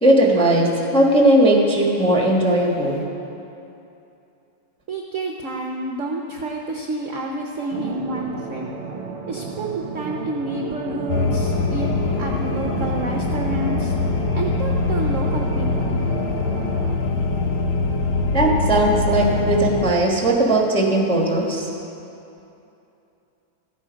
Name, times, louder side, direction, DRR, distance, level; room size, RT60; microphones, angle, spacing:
voice 1, 0.0-3.0 18.3-21.7, right 1 dB, 5° left, -1 dB, 0.9 m, -18 dB
voice 2, 4.9-8.7 9.3-13.9 14.3-16.0, right 2 dB, 65° right, 1 dB, 0.7 m, -29 dB
sound 1, 7.7-16.9, right 4 dB, 35° right, 1.0 m, -32 dB
sound 2, 11.1-19.9, left 3 dB, 85° left, 1.8 m, -23 dB
14.0 x 8.8 x 5.1 m, 2.8 s
omnidirectional pair, 2.3 m